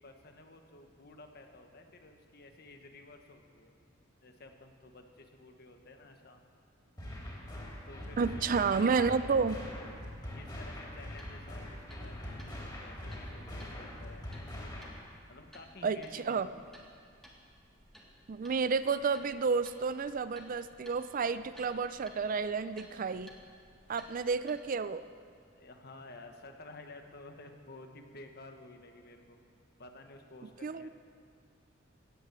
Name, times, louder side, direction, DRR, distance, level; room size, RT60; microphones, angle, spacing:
voice 1, 0.0-3.7 4.2-6.4 7.8-9.4 10.3-14.3 15.3-16.7 25.5-29.4 29.8-30.9, left 2 dB, 55° left, 5 dB, 1.3 m, -52 dB
sound 1, 7.0-15.0, left 1 dB, 20° left, 3.5 m, -43 dB
voice 2, 8.2-9.6 15.8-16.5 18.3-23.3 23.9-25.0 30.6-30.9, right 5 dB, 45° right, 14 dB, 0.4 m, -31 dB
sound 2, 11.0-24.5, equal, ahead, 1.8 m, -58 dB
16.5 x 9.0 x 7.5 m, 2.2 s
head